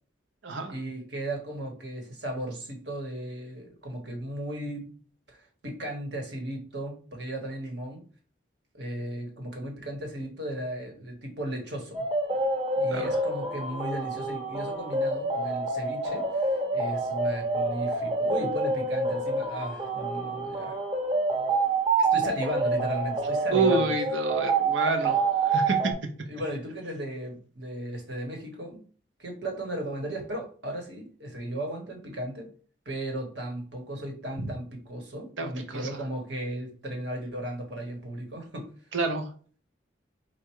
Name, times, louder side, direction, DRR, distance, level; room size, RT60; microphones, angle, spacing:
voice 1, 0.7-4.9 5.3-8.0 8.7-12.0 12.8-20.8 22.0-24.0 26.3-28.8 29.2-32.5 32.8-38.7, right 1 dB, 65° right, 2 dB, 1.4 m, -36 dB
sound 1, 11.9-25.9, right 3 dB, 30° right, 1.0 m, -27 dB
voice 2, 23.5-25.9 35.4-35.9 38.9-39.3, right 3 dB, 85° right, 5 dB, 0.8 m, -28 dB
4.5 x 2.5 x 4.6 m, 0.42 s
head